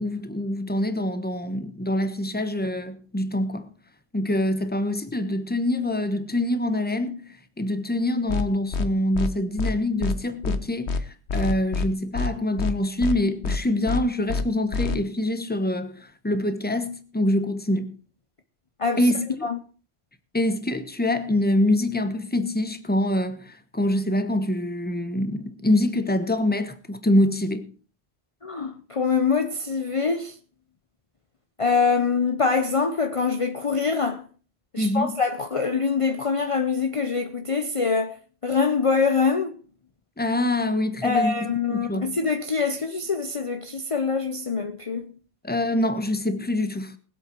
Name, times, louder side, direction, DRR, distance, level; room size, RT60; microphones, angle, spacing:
voice 1, 0.0-3.7 4.1-7.2 7.6-11.0 11.3-18.0 19.0-19.3 20.3-27.7 34.8-35.2 40.2-42.2 45.4-47.0, left 1 dB, 10° left, 1.1 m, -25 dB
sound 1, 8.3-8.4 8.7-8.9 9.1-9.3 9.6-9.7 10.0-10.2 10.4-10.6 10.9-11.0 11.3-11.9 12.1-12.3 12.6-12.7 13.0-13.2 13.4-13.6 13.9-14.0 14.3-14.4 14.7-14.9, left 3 dB, 90° left, 1.4 m, -26 dB
voice 2, 28.4-30.3 31.6-34.3 34.7-38.2 38.4-39.6 41.0-45.2, left 5 dB, 35° left, 0.8 m, -24 dB
21.0 x 7.9 x 4.7 m
omnidirectional pair, 1.1 m